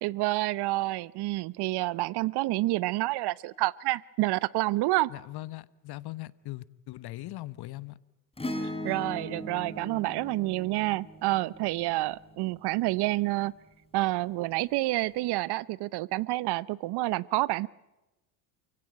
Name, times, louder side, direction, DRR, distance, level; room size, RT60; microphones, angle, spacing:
voice 1, 0.0-5.1 8.8-13.5 13.9-17.7, right 19 dB, 50° right, 22 dB, 0.8 m, -28 dB
voice 2, 5.1-8.0, left 17 dB, 50° left, 18 dB, 1.2 m, -40 dB
Acoustic guitar / Strum, 8.4-13.0 14.8-14.9, left 1 dB, 10° left, 4.1 m, -39 dB
29.0 x 16.5 x 9.0 m, 1.0 s
supercardioid pair, 90°, 50 cm